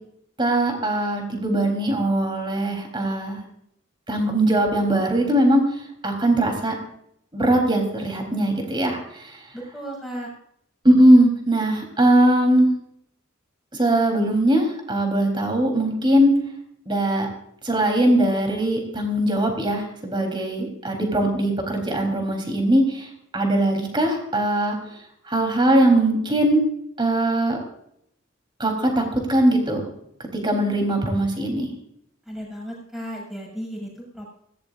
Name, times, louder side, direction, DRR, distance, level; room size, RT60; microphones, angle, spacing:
voice 1, 0.4-3.4 4.1-5.6 6.0-6.7 7.3-9.3 10.8-12.7 13.7-16.3 16.9-17.3 17.6-23.1 23.3-24.8 25.3-26.6 27.0-27.6 28.6-29.8 30.4-31.7, right 1 dB, 25° right, 3 dB, 3.7 m, -20 dB
voice 2, 9.5-10.3 32.3-34.3, equal, ahead, -3 dB, 6.7 m, -34 dB
20.0 x 16.5 x 2.6 m, 0.71 s
head